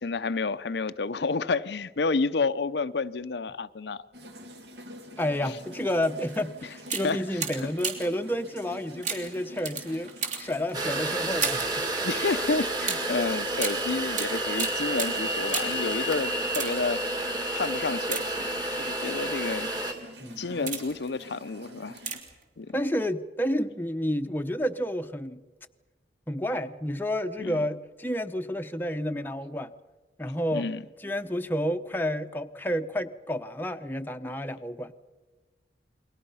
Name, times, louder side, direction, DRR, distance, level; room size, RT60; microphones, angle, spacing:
voice 1, 0.0-4.1 5.1-5.2 7.0-7.2 12.0-17.0 17.5-18.4 18.8-19.7 20.4-22.0 22.6-22.8 27.4-27.6 30.5-30.8, left 4 dB, 70° left, 0.6 m, -30 dB
sound 1, 4.1-22.2, left 1 dB, 70° right, 2.4 m, -47 dB
voice 2, 5.2-10.1 10.4-11.9 20.2-20.7 22.7-25.4 26.3-29.7 30.2-30.7 31.0-34.9, equal, 10° left, 0.8 m, -30 dB
sound 2, 6.3-6.4 6.8-8.2 9.0-11.8 12.8-15.9 16.4-17.0 18.0-18.8 19.5-19.7 20.3-21.1 22.0-22.4 22.7-22.8, right 5 dB, 40° right, 3.2 m, -34 dB
sound 3, 10.7-19.9, right 1 dB, 25° right, 2.3 m, -30 dB
29.5 x 22.5 x 5.6 m
head